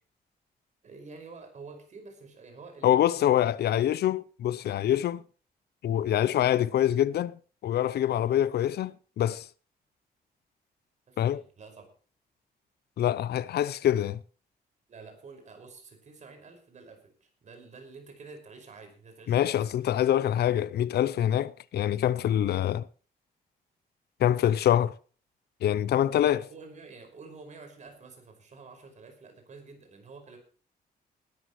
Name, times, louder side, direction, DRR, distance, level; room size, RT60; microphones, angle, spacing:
voice 1, 0.8-3.3 11.1-11.8 14.9-19.6 26.0-30.4, right 4 dB, 45° right, 5.3 m, -49 dB
voice 2, 2.8-5.2 5.8-9.5 11.2-11.4 13.0-14.2 19.3-22.9 24.2-24.9 25.6-26.4, left 11 dB, 80° left, 0.6 m, -25 dB
19.5 x 12.5 x 3.1 m
wide cardioid pair, 145°, 16 cm